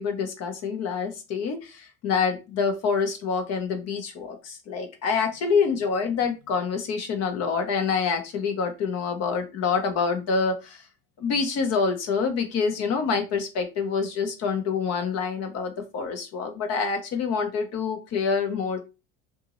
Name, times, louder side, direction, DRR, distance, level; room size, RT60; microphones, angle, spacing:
voice 1, 0.0-10.8 11.2-18.8, left 5 dB, 55° left, 6 dB, 1.1 m, -26 dB
2.8 x 2.6 x 3.8 m, 0.28 s
hypercardioid pair, 80°, 30 cm